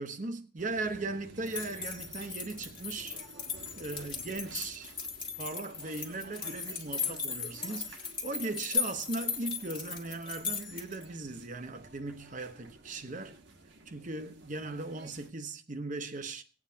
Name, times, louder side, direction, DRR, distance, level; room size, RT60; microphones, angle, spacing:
voice 1, 0.0-3.2 3.8-4.9 5.4-13.4 13.9-16.4, right 3 dB, 45° right, 0.9 m, -38 dB
sound 1, 0.6-15.3, right 2 dB, 75° right, 1.4 m, -53 dB
sound 2, 1.5-11.0, left 5 dB, 25° left, 1.6 m, -37 dB
19.0 x 8.5 x 2.8 m
head